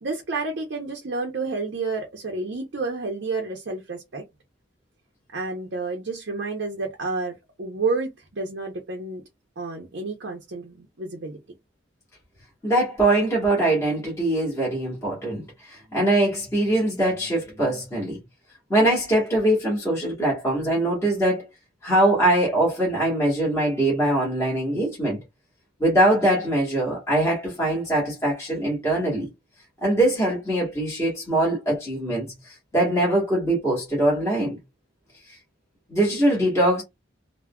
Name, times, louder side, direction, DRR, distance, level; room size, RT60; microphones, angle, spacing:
voice 1, 0.0-4.2 5.3-9.2 9.6-11.4, right 3 dB, 60° right, 0.6 m, -30 dB
voice 2, 12.6-18.2 18.7-21.5 21.8-25.2 25.8-29.3 29.8-34.6 35.9-36.8, right 1 dB, 15° left, 1.1 m, -22 dB
3.5 x 2.1 x 2.2 m
head